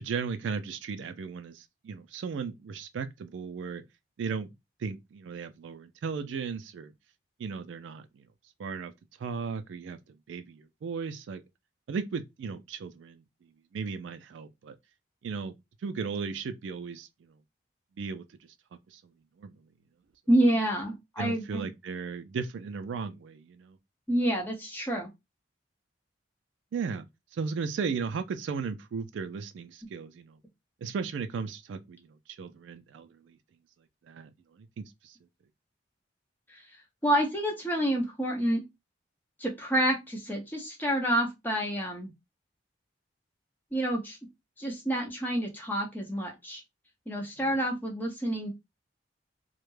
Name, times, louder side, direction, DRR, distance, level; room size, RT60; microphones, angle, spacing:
voice 1, 0.0-3.8 4.2-4.5 4.8-6.9 7.4-8.0 8.6-8.9 9.2-10.0 10.3-11.4 11.9-13.2 13.7-14.7 15.2-15.5 15.8-17.1 18.0-18.2 19.4-19.5 21.2-23.8 26.7-27.0 27.3-30.4 30.8-32.1 32.4-33.3 34.1-34.3 34.8-35.1, right 5 dB, 80° right, 0.3 m, -35 dB
voice 2, 20.3-21.7 24.1-25.1 36.5-36.6 37.0-38.6 39.4-42.1 43.7-44.2 44.6-46.6 47.1-48.5, right 1 dB, 10° left, 0.7 m, -28 dB
2.2 x 2.1 x 3.1 m
head